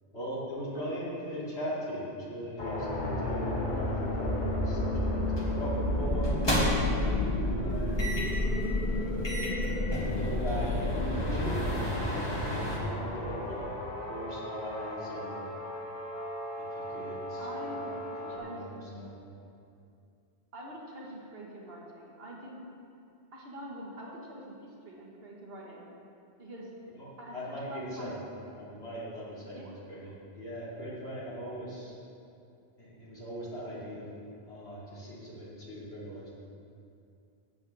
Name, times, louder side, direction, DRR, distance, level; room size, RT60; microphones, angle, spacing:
voice 1, 0.1-5.1 5.4-8.0 8.9-9.3 9.8-12.1 12.5-13.7 14.1-15.5 16.5-19.1 26.9-28.2 28.5-31.9 32.8-34.1 34.5-36.3, equal, 75° left, -9 dB, 3.4 m, -40 dB
sound 1, 2.6-18.4, left 1 dB, 45° left, 1.3 m, -32 dB
sound 2, 5.4-5.6 6.2-7.0 8.0-8.4 8.9-9.0 9.2-12.8, equal, 25° left, 1.8 m, -33 dB
voice 2, 17.4-17.9 18.4-19.1 20.5-22.6 23.3-25.8 26.4-26.7 27.2-27.3 27.7-28.2 29.5-29.8, right 1 dB, 60° right, -3 dB, 1.8 m, -44 dB
14.5 x 8.5 x 3.5 m, 2.5 s
omnidirectional pair, 1.1 m